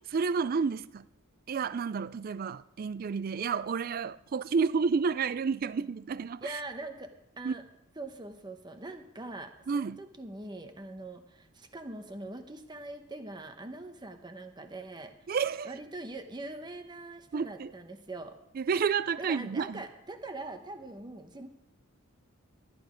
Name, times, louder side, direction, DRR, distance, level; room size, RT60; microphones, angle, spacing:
voice 1, 0.1-1.0 1.5-6.5 7.4-7.6 9.7-10.0 15.3-15.7 17.3-17.7 18.6-19.8, right 5 dB, 40° right, 0.3 m, -30 dB
voice 2, 6.4-7.6 8.0-15.3 15.6-18.4 19.2-21.5, right 2 dB, 20° right, 0.9 m, -42 dB
13.0 x 9.5 x 5.1 m
head